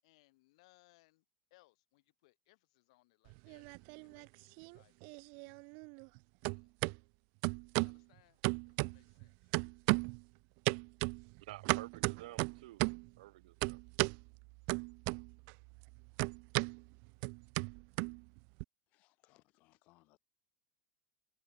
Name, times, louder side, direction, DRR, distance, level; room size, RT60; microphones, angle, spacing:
voice 1, 0.0-5.7 6.4-6.7 7.8-9.5, left 22 dB, 60° left, 7.5 m, -70 dB
sound 1, 3.3-4.3 4.6-6.2 6.4-7.0 7.4-8.0 8.4-9.2 9.5-10.2 10.7-13.1 13.6-14.2 14.7-15.5 15.8-18.6, right 38 dB, 45° right, 0.3 m, -35 dB
voice 2, 11.4-12.8 13.2-13.8, right 16 dB, 85° right, 1.5 m, -51 dB
voice 3, 18.9-20.2, left 22 dB, 40° left, 4.3 m, -69 dB
supercardioid pair, 175°, 4 cm